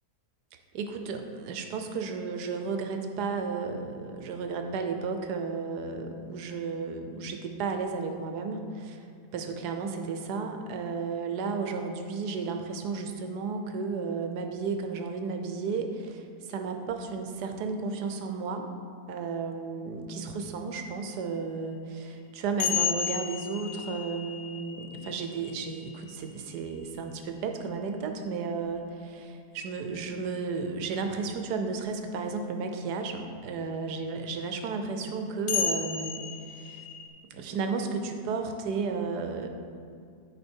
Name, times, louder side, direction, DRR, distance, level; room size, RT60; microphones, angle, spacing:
voice 1, 0.7-9.0 9.3-16.2 16.5-18.7 19.1-36.8 37.3-39.5, right 4 dB, 80° right, 5 dB, 1.3 m, -33 dB
sound 1, 22.6-26.9 28.7-28.8 31.8-31.9 35.5-37.1, left 8 dB, 65° left, 1.1 m, -33 dB
9.5 x 4.9 x 4.5 m, 2.3 s
omnidirectional pair, 1.7 m